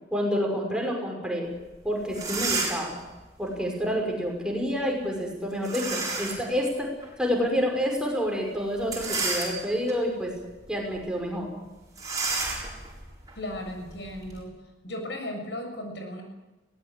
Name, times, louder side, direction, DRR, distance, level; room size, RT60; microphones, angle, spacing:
voice 1, 0.1-1.5 1.8-3.0 3.4-6.9 7.2-10.3 10.7-11.5, equal, 5° right, 0 dB, 5.7 m, -28 dB
sound 1, 1.7-1.8 2.1-3.0 5.6-6.5 7.0-7.1 8.8-9.9 10.5-10.7 10.9-11.1 12.0-14.4, right 3 dB, 20° right, 6.8 m, -31 dB
voice 2, 13.3-14.5 14.8-16.2, left 1 dB, 70° left, 3 dB, 6.9 m, -36 dB
23.0 x 18.5 x 8.4 m, 1.1 s
head